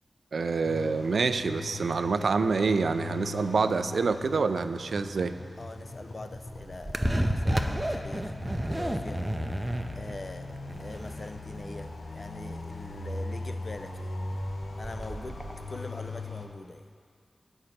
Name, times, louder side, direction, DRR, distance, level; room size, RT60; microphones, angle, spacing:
voice 1, 0.3-5.3, right 4 dB, 80° right, 11 dB, 0.3 m, -27 dB
sound 1, 0.6-16.5, left 2 dB, 75° left, 0.8 m, -40 dB
voice 2, 5.6-8.3 8.7-9.3 9.9-10.5 10.8-14.1 14.8-16.9, left 2 dB, 45° left, 8 dB, 0.5 m, -42 dB
sound 2, 6.4-15.6, right 1 dB, 15° right, 0.6 m, -32 dB
7.8 x 6.3 x 5.8 m, 2.1 s
wide cardioid pair, 65°, 0 cm